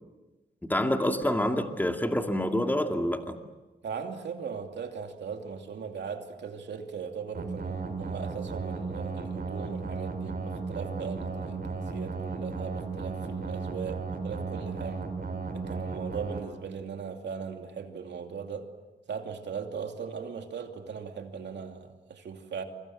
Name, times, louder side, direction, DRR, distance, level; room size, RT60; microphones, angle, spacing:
voice 1, 0.6-3.4, left 1 dB, 10° left, 5 dB, 2.4 m, -27 dB
voice 2, 3.8-15.0 15.5-18.7 19.1-22.6, right 6 dB, 85° right, 5 dB, 2.7 m, -39 dB
sound 1, 7.3-16.4, right 4 dB, 60° right, 5.8 m, -35 dB
27.0 x 25.5 x 7.7 m, 1.1 s
cardioid pair, 75°, 18 cm